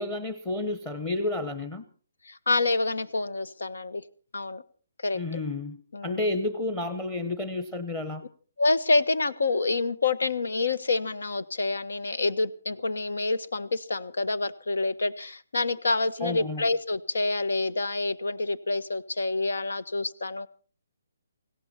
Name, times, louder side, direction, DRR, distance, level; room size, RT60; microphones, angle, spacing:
voice 1, 0.0-1.9 5.1-5.8 6.0-8.2 16.2-16.6, left 2 dB, 15° left, 11 dB, 1.1 m, -31 dB
voice 2, 2.3-4.0 4.3-4.6 5.0-5.4 5.9-6.2 8.6-20.5, left 3 dB, 90° left, 14 dB, 1.3 m, -27 dB
18.5 x 17.0 x 4.4 m, 0.40 s
hypercardioid pair, 165°, 0 cm